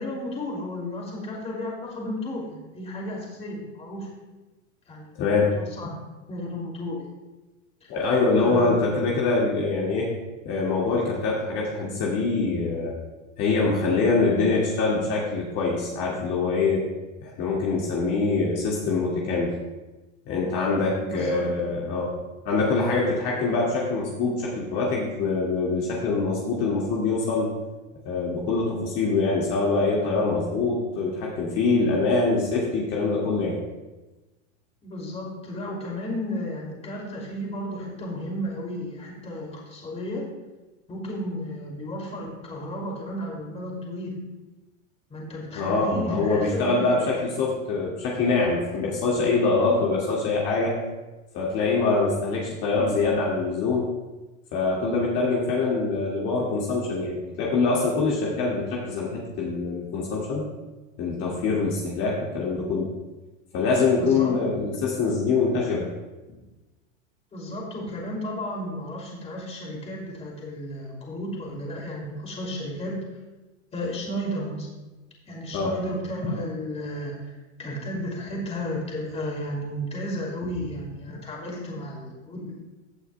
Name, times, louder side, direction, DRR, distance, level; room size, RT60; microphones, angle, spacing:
voice 1, 0.0-4.1 4.9-5.2 5.6-5.9 6.3-7.1 7.8-7.9 8.4-8.8 21.0-21.7 34.8-40.3 40.9-44.2 45.1-47.3 49.5-49.8 64.0-64.4 67.3-73.0 73.7-74.7 75.3-77.1 77.6-82.6, left 1 dB, 15° left, -1 dB, 2.7 m, -33 dB
voice 2, 5.2-5.5 7.9-10.1 10.5-12.9 13.4-16.8 17.2-19.5 20.3-22.2 22.5-27.5 28.0-33.6 45.6-50.8 51.3-53.9 54.5-60.5 61.0-62.9 63.5-65.9 75.5-75.8, left 3 dB, 40° left, -4 dB, 2.1 m, -24 dB
15.5 x 8.5 x 2.3 m, 1.1 s
supercardioid pair, 135°, 38 cm